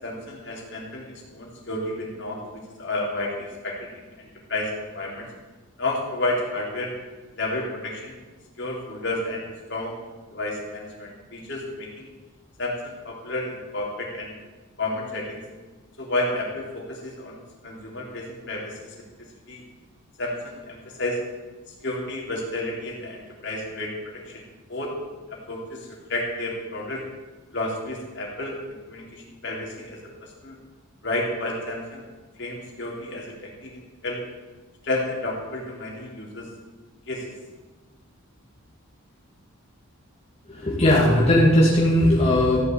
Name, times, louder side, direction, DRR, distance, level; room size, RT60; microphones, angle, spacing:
voice 1, 0.0-5.3 5.8-6.9 7.3-8.2 8.6-10.0 10.3-12.1 12.6-14.3 14.8-15.4 16.0-19.1 19.5-19.6 20.2-21.2 21.8-24.4 24.7-25.0 25.3-27.0 27.5-28.6 28.9-30.6 31.0-32.0 32.4-34.2 34.8-36.5 37.1-37.3, left 2 dB, 55° left, -2 dB, 3.4 m, -31 dB
voice 2, 40.5-42.6, left 1 dB, 30° left, -6 dB, 2.6 m, -18 dB
14.5 x 7.1 x 8.7 m, 1.3 s
head